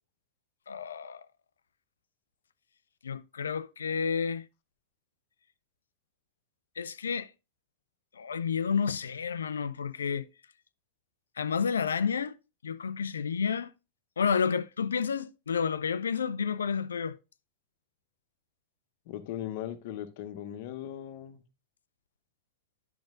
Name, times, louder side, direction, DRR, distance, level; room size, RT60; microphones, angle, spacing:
voice 1, 0.7-1.2 3.0-4.5 6.8-7.3 8.1-10.3 11.4-12.3 12.6-13.7 14.2-17.2, left 6 dB, 70° left, 0.4 m, -30 dB
voice 2, 19.1-21.4, left 11 dB, 50° left, 0.9 m, -38 dB
10.5 x 6.2 x 2.5 m
figure-of-eight pair, 90°, 0 cm